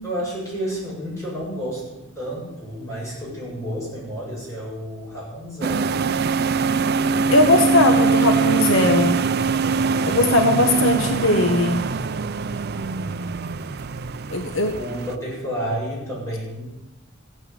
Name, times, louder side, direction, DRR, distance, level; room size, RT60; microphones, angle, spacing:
voice 1, 0.0-6.0 14.7-16.7, equal, 15° left, -6 dB, 7.7 m, -30 dB
sound 1, 5.6-15.2, right 5 dB, 50° right, 0.5 m, -22 dB
voice 2, 7.3-9.2 10.1-11.8 14.3-14.7, left 2 dB, 65° left, 5 dB, 1.2 m, -19 dB
15.5 x 9.1 x 8.4 m, 1.0 s
head